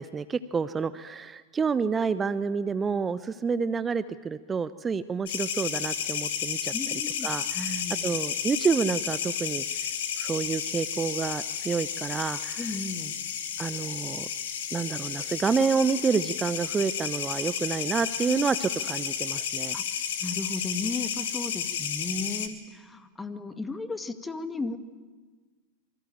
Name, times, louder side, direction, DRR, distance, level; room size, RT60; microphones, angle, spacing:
voice 1, 0.0-6.7 7.2-9.6 10.2-12.7 13.6-14.3 14.7-19.8, right 5 dB, 15° right, 15 dB, 0.8 m, -28 dB
sound 1, 5.3-22.5, left 8 dB, 55° left, 2.7 m, -32 dB
voice 2, 6.7-7.3 7.5-8.2 12.6-13.1 19.7-19.8 20.2-24.8, left 3 dB, 10° left, 11 dB, 1.9 m, -35 dB
26.5 x 24.5 x 9.1 m, 1.4 s
figure-of-eight pair, 90°, 0 cm